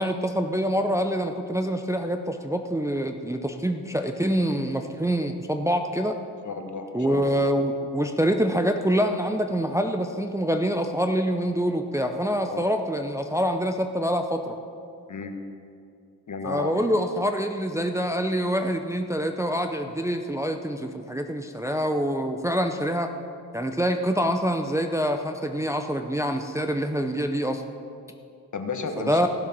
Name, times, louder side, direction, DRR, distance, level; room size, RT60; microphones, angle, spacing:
voice 1, 0.0-6.2 6.9-14.6 16.4-23.1 23.5-27.6 29.1-29.3, equal, 10° right, 5 dB, 0.6 m, -25 dB
voice 2, 6.4-7.4 12.4-12.8 15.1-15.3 16.3-16.9 28.5-29.2, left 4 dB, 50° left, 5 dB, 1.3 m, -33 dB
15.5 x 7.1 x 6.0 m, 2.5 s
cardioid pair, 70°, 39 cm